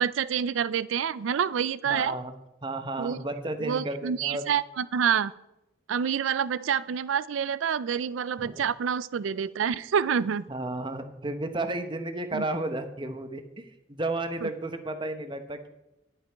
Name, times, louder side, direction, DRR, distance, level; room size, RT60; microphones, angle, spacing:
voice 1, 0.0-2.2 3.0-3.2 3.6-5.3 5.9-10.5 12.3-12.4 14.4-14.5, right 7 dB, 80° right, 18 dB, 0.4 m, -27 dB
voice 2, 1.9-2.3 2.6-4.5 8.4-8.6 10.5-13.4 13.9-15.7, right 2 dB, 25° right, 8 dB, 0.9 m, -32 dB
10.5 x 8.9 x 4.5 m, 0.92 s
head